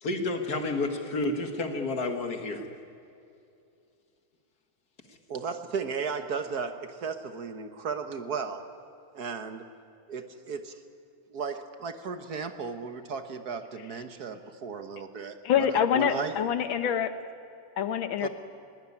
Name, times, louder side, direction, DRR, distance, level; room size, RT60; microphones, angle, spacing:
voice 1, 0.0-2.6, left 2 dB, 55° left, 5 dB, 2.2 m, -30 dB
voice 2, 5.3-8.6 9.1-9.7 10.1-10.8 11.3-16.3 18.2-18.3, right 5 dB, 55° right, 8 dB, 1.6 m, -35 dB
voice 3, 15.4-17.1 17.8-18.3, left 8 dB, 85° left, 10 dB, 1.8 m, -25 dB
21.0 x 17.5 x 9.8 m, 2.6 s
omnidirectional pair, 2.1 m